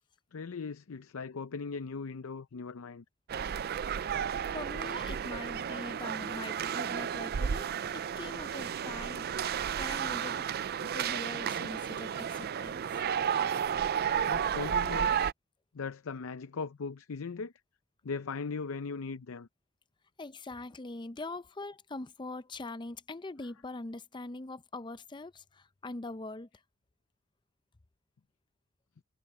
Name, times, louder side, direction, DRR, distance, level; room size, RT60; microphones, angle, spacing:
voice 1, 0.3-3.0 14.3-15.2 15.7-17.5 18.0-19.5 23.4-23.6, left 4 dB, 70° left, 0.5 m, -39 dB
sound 1, 3.3-15.3, right 8 dB, 45° right, 0.4 m, -32 dB
voice 2, 4.5-10.5 10.8-12.9 20.2-26.5, left 2 dB, 20° left, 0.5 m, -43 dB
head